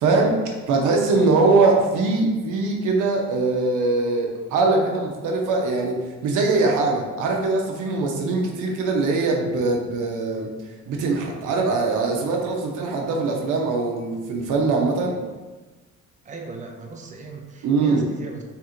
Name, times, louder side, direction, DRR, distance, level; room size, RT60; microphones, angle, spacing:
voice 1, 0.0-10.5 10.9-15.2 17.6-18.0, right 3 dB, 90° right, 0 dB, 0.8 m, -22 dB
voice 2, 16.2-18.4, right 4 dB, 25° right, 2 dB, 0.5 m, -38 dB
3.3 x 2.5 x 4.3 m, 1.2 s
cardioid pair, 90°, 30 cm